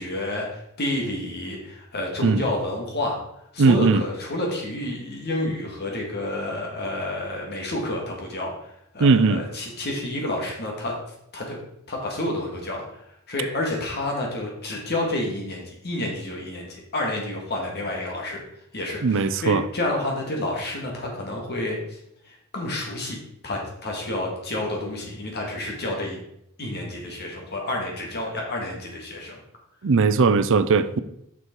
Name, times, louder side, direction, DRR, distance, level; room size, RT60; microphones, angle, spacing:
voice 1, 0.0-3.2 3.5-10.9 11.3-11.6 11.9-18.4 18.7-22.0 22.2-23.2 23.4-26.2 26.6-29.4, left 1 dB, 50° left, 2.1 m, -29 dB
voice 2, 3.6-4.0 9.0-9.4 19.0-19.6 29.8-31.0, right 4 dB, 65° right, 0.5 m, -19 dB
6.5 x 6.1 x 4.6 m
head